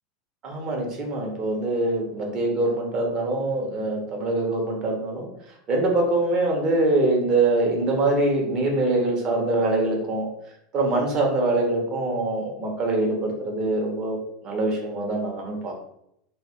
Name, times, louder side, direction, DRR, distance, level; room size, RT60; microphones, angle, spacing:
voice 1, 0.4-5.3 5.7-10.3 10.7-14.2 14.4-15.7, right 2 dB, 30° right, 0 dB, 1.1 m, -24 dB
3.4 x 2.5 x 4.4 m, 0.77 s
supercardioid pair, 150°, 2 cm